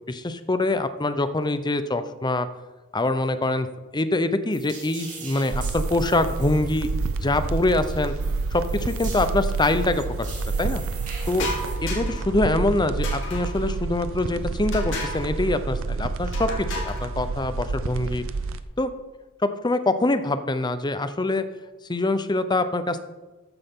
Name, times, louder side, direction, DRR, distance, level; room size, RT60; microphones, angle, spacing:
voice 1, 0.1-2.5 2.9-3.7 3.9-6.9 7.2-8.1 8.5-10.3 10.6-10.8 11.3-11.5 11.8-16.5 16.7-18.2 18.8-18.9 19.4-21.5 21.9-23.0, left 2 dB, 20° left, 11 dB, 0.6 m, -24 dB
sound 1, 4.5-11.7, right 4 dB, 35° right, 3.1 m, -42 dB
sound 2, 5.5-18.6, right 3 dB, 65° right, 0.6 m, -29 dB
sound 3, 11.3-12.3 13.0-13.7 14.7-15.3 16.3-17.1, left 2 dB, 60° left, 2.8 m, -33 dB
14.0 x 9.7 x 3.7 m, 1.2 s
head